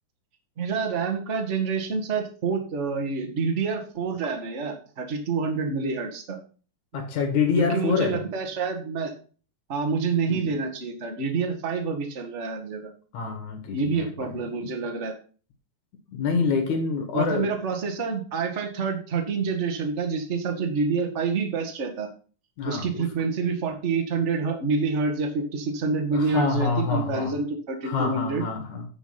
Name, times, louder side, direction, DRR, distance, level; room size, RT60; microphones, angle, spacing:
voice 1, 0.6-6.4 7.5-9.1 9.7-12.9 13.7-15.1 17.1-22.1 22.6-28.4, right 4 dB, 45° right, 4 dB, 0.9 m, -27 dB
voice 2, 6.9-8.2 10.3-10.5 13.1-14.3 16.1-17.5 22.6-23.1 26.1-27.3 27.8-28.9, left 5 dB, 65° left, 4 dB, 2.8 m, -26 dB
9.3 x 5.2 x 5.8 m, 0.38 s
omnidirectional pair, 3.9 m